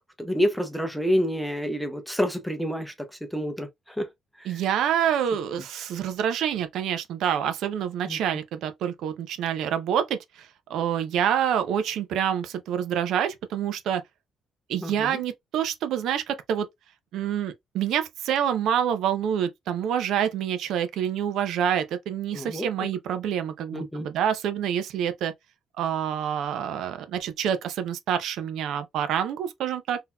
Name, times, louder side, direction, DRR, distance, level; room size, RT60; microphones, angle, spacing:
voice 1, 0.2-2.9 3.2-4.1 4.4-4.6 8.1-8.2 14.8-15.2 22.3-22.7 23.7-24.1, equal, ahead, 0.6 m, -28 dB
voice 2, 4.5-14.0 14.7-16.7 17.1-25.3 25.8-30.0, right 9 dB, 75° right, 0.5 m, -27 dB
3.8 x 2.8 x 2.2 m
cardioid pair, 165°, 0 cm